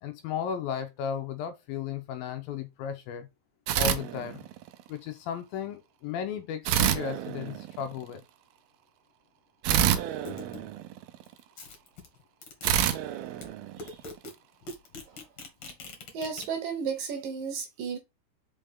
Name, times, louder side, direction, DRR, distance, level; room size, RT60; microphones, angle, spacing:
voice 1, 0.0-3.3 3.8-4.5 4.9-8.2, left 8 dB, 75° left, 2.4 m, -35 dB
sound 1, 3.7-4.8 6.7-8.0 9.6-11.3 12.6-14.2, right 10 dB, 80° right, 2.6 m, -28 dB
sound 2, 10.2-10.7 11.3-13.0 13.4-13.5 13.8-14.3 14.6-16.5, left 3 dB, 45° left, 2.2 m, -43 dB
voice 2, 16.1-18.0, right 6 dB, 65° right, 2.6 m, -33 dB
5.5 x 5.2 x 3.6 m
omnidirectional pair, 4.6 m